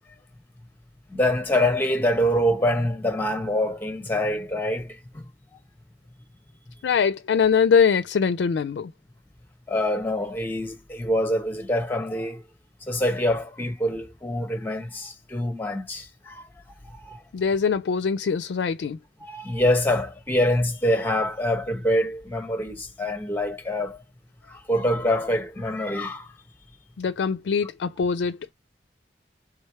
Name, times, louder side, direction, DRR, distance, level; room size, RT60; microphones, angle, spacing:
voice 1, 1.1-5.2 9.7-12.4 12.9-16.4 17.0-17.2 19.2-24.0 24.5-26.3, left 1 dB, 10° left, 0.9 m, -25 dB
voice 2, 6.8-8.9 17.3-19.0 27.0-28.5, left 6 dB, 90° left, 0.4 m, -22 dB
3.5 x 3.2 x 4.6 m
head